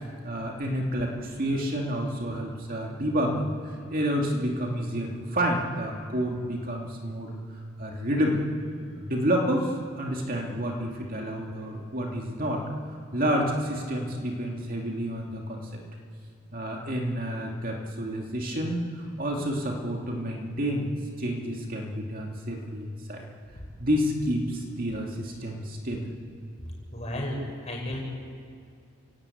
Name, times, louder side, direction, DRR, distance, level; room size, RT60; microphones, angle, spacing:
voice 1, 0.2-3.5 3.9-7.3 7.8-8.5 9.0-9.7 10.0-12.6 13.1-15.8 16.5-20.9 21.2-23.2 23.8-26.1, equal, 40° right, 0 dB, 2.6 m, -29 dB
voice 2, 26.9-28.0, left 1 dB, 30° left, -1 dB, 6.4 m, -33 dB
29.5 x 18.0 x 8.6 m, 2.3 s
head